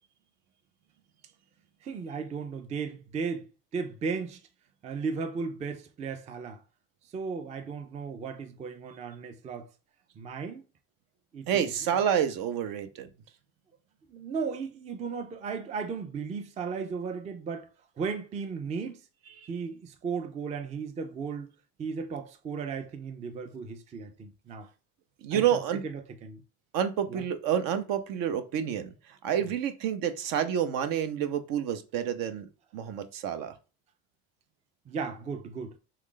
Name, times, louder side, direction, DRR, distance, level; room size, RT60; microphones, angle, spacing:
voice 1, 1.8-4.4 4.8-6.6 7.0-9.7 10.2-10.7 11.3-11.7 14.1-17.7 18.0-19.0 19.5-21.5 21.8-24.7 25.3-26.4 27.1-27.2 34.9-35.8, right 5 dB, 20° right, 0.3 m, -35 dB
voice 2, 11.5-13.1 19.4-19.5 25.2-25.8 26.7-28.9 29.2-32.5 32.7-33.5, right 9 dB, 70° right, 0.7 m, -28 dB
3.2 x 2.4 x 3.7 m
supercardioid pair, 105°, 35 cm